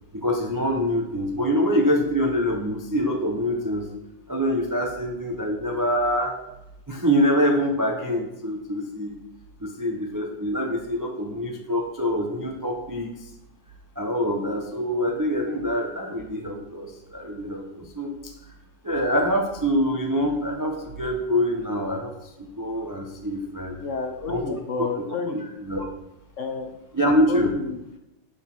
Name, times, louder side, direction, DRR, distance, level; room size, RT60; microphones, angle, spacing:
voice 1, 0.1-3.9 4.3-6.3 6.9-9.1 9.6-13.1 14.0-18.3 18.8-23.8 24.3-24.9 25.3-25.8 26.9-27.5, equal, 30° right, 2 dB, 0.3 m, -25 dB
voice 2, 23.8-25.4 26.4-26.7 27.3-27.8, left 4 dB, 55° left, 4 dB, 1.0 m, -30 dB
6.6 x 5.6 x 6.0 m, 0.89 s
omnidirectional pair, 1.9 m